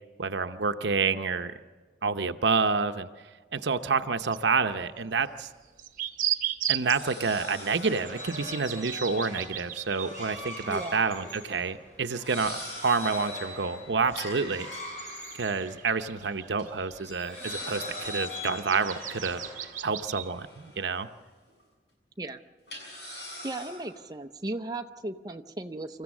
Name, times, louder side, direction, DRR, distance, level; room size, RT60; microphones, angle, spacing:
voice 1, 0.2-1.5 2.0-3.1 3.5-5.5 6.7-14.7 15.4-19.4 19.8-21.1, right 4 dB, 90° right, 9 dB, 0.8 m, -28 dB
sound 1, 4.3-4.4 5.4-11.6 11.9-12.0 12.4-12.5 13.9-14.0 14.6-17.0 17.4-20.3, right 12 dB, 45° right, 0.9 m, -37 dB
sound 2, 5.2-5.3 6.8-8.2 9.6-10.8 11.1-11.3 12.1-13.5 14.2-15.8 16.2-16.3 16.6-16.7 17.3-18.9 19.7-21.2 21.5-21.6 22.7-24.0, left 1 dB, 75° left, 7.3 m, -44 dB
sound 3, 7.2-16.3 16.9-19.9, left 1 dB, 40° left, 7.9 m, -41 dB
voice 2, 10.7-11.0 22.2-22.4 23.4-26.0, right 2 dB, 20° right, 5 dB, 0.6 m, -36 dB
26.0 x 14.5 x 7.2 m, 1.4 s
head